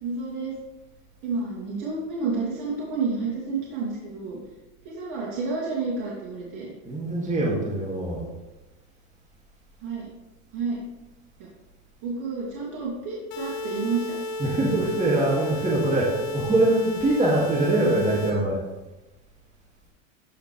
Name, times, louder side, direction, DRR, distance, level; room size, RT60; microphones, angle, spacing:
voice 1, 0.0-0.5 1.2-4.4 4.8-6.7 9.8-10.1 10.5-10.8 12.0-14.2, right 4 dB, 55° right, -4 dB, 2.5 m, -30 dB
voice 2, 6.9-8.2 14.4-18.6, right 2 dB, 20° right, -4 dB, 2.2 m, -23 dB
sound 1, 13.3-18.3, left 1 dB, 60° left, 1.8 m, -33 dB
14.0 x 5.1 x 3.3 m, 1.0 s
hypercardioid pair, 105°, 40 cm